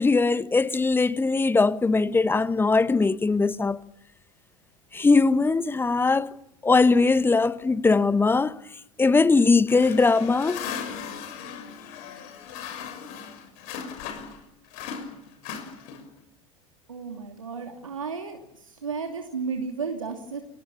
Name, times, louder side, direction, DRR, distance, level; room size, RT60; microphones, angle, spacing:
voice 1, 0.0-3.8 4.9-6.3 6.6-8.6 9.0-10.6, left 3 dB, 15° left, 1.2 m, -20 dB
sound 1, 9.7-14.4 14.7-16.2, left 7 dB, 55° left, 6.6 m, -37 dB
voice 2, 16.9-18.4 18.8-20.4, right 5 dB, 80° right, 2.9 m, -33 dB
29.0 x 23.0 x 7.1 m
figure-of-eight pair, 80°, 17 cm